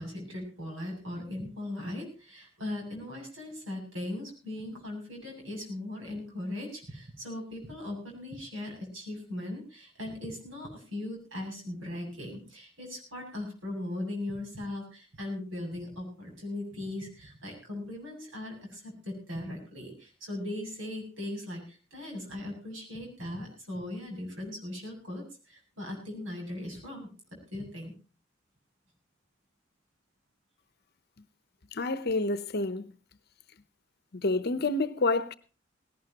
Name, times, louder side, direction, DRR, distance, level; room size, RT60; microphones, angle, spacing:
voice 1, 0.0-27.1 27.5-27.9, left 1 dB, 85° right, 7.6 m, -39 dB
voice 2, 31.7-32.9 34.1-35.3, left 2 dB, 55° left, 0.9 m, -28 dB
18.0 x 17.5 x 2.9 m
head